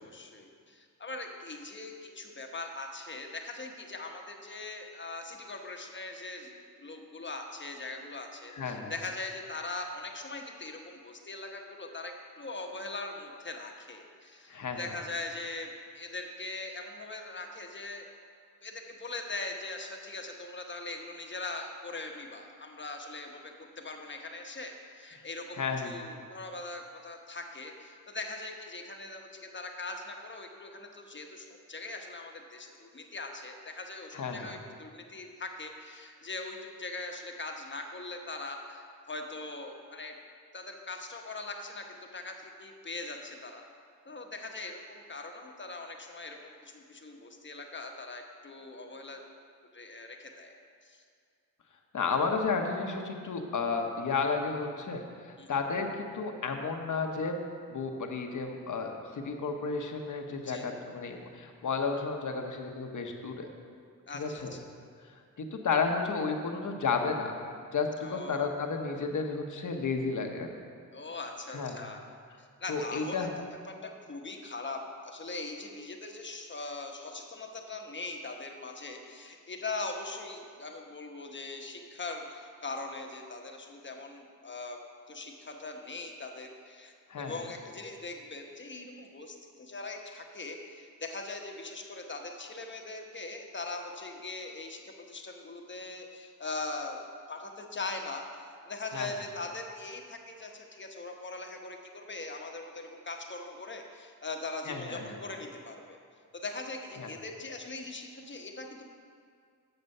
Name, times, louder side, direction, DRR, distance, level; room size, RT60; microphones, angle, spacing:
voice 1, 0.0-18.1 18.6-40.1 40.5-41.9 42.1-43.6 44.1-49.2 49.7-50.6 50.8-51.0 55.4-55.6 60.5-60.7 64.1-64.7 68.0-68.5 70.9-72.1 72.4-84.8 85.1-97.0 97.3-98.2 98.7-106.0 106.3-108.8, left 3 dB, 30° left, 3 dB, 1.0 m, -41 dB
voice 2, 8.5-8.9 14.5-14.8 25.5-26.0 34.1-34.5 51.9-57.3 57.7-63.5 64.1-64.5 65.4-67.3 67.7-70.5 71.5-71.8 72.7-73.3 87.1-87.4 98.9-99.1 104.7-105.2 107.0-107.1, left 4 dB, 55° left, 4 dB, 1.0 m, -32 dB
7.9 x 6.6 x 5.4 m, 2.2 s
cardioid pair, 65°, 35 cm